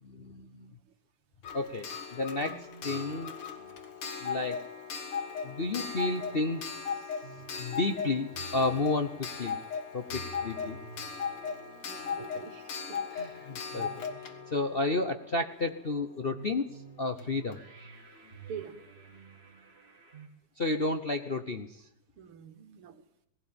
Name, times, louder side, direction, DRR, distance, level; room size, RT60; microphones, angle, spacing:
voice 1, 0.0-0.8 1.5-3.4 4.2-4.7 5.4-6.9 7.6-9.6 9.9-10.8 13.1-17.6 20.6-21.9, left 2 dB, 40° left, 6 dB, 0.8 m, -32 dB
Clock, 1.4-16.0 17.2-17.3 17.5-17.6, left 6 dB, 80° left, 2.7 m, -38 dB
sound 1, 1.9-20.3, right 4 dB, 30° right, 2.8 m, -53 dB
voice 2, 11.8-13.1 18.5-18.8 22.2-23.0, right 7 dB, 80° right, 9 dB, 2.4 m, -45 dB
19.0 x 17.0 x 8.8 m, 0.75 s
omnidirectional pair, 2.3 m